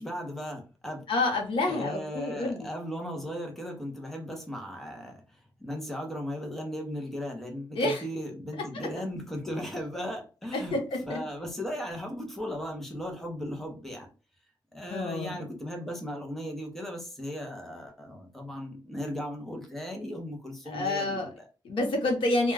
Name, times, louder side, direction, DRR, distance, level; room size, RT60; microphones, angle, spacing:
voice 1, 0.0-1.0 1.7-10.8 11.1-14.1 14.7-21.4, equal, 5° left, 2 dB, 0.6 m, -37 dB
voice 2, 1.1-2.7 7.8-8.0 10.5-11.2 14.9-15.4 20.7-21.3 21.6-22.5, left 2 dB, 80° left, 2 dB, 0.8 m, -28 dB
2.2 x 2.2 x 3.2 m, 0.34 s
wide cardioid pair, 165°, 9 cm